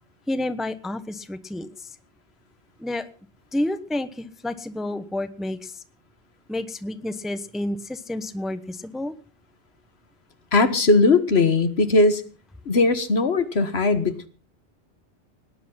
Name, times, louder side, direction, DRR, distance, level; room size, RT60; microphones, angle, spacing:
voice 1, 0.3-2.0 2.8-3.1 3.5-5.8 6.5-9.1, left 1 dB, ahead, 11 dB, 0.9 m, -30 dB
voice 2, 10.5-12.2 12.7-14.3, left 3 dB, 65° left, 11 dB, 1.6 m, -19 dB
19.0 x 10.5 x 5.6 m, 0.39 s
omnidirectional pair, 1.2 m